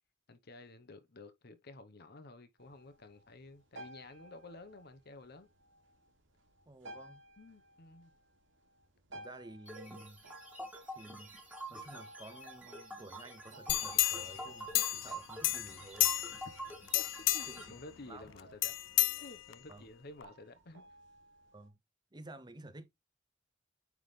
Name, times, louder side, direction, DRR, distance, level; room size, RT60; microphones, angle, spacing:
voice 1, 0.3-5.5 7.4-8.1 16.9-17.0 17.3-20.9, left 2 dB, 55° left, 1.0 m, -52 dB
sound 1, 2.6-21.7, right 1 dB, 85° right, 2.1 m, -57 dB
voice 2, 6.7-7.2 9.1-10.3 10.9-11.4 11.7-16.1 17.5-17.8 18.1-18.2 19.7-19.8 21.5-21.8 22.1-22.9, right 2 dB, 25° right, 0.7 m, -52 dB
sound 2, 9.7-17.6, right 2 dB, 10° right, 1.9 m, -47 dB
sound 3, 13.7-15.2 15.4-16.5 16.9-17.7 18.6-19.7 20.2-20.3, left 17 dB, 75° left, 0.4 m, -31 dB
9.2 x 3.7 x 3.2 m
head